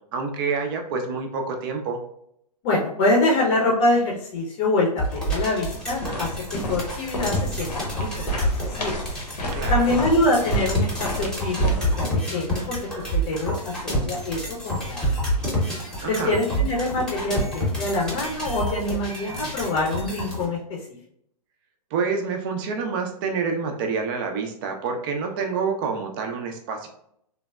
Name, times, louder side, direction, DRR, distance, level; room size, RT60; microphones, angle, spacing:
voice 1, 0.1-2.0 9.5-9.9 16.0-16.6 21.9-26.9, right 5 dB, 35° right, 3 dB, 0.4 m, -27 dB
voice 2, 2.6-6.4 6.7-9.0 9.7-12.1 12.3-15.0 16.0-20.6, left 2 dB, 45° left, -2 dB, 0.6 m, -25 dB
sound 1, 5.0-20.5, right 1 dB, 5° left, 0.8 m, -28 dB
sound 2, 5.7-11.9, left 1 dB, 75° left, 0.9 m, -32 dB
3.2 x 2.0 x 2.2 m, 0.72 s
hypercardioid pair, 125°, 21 cm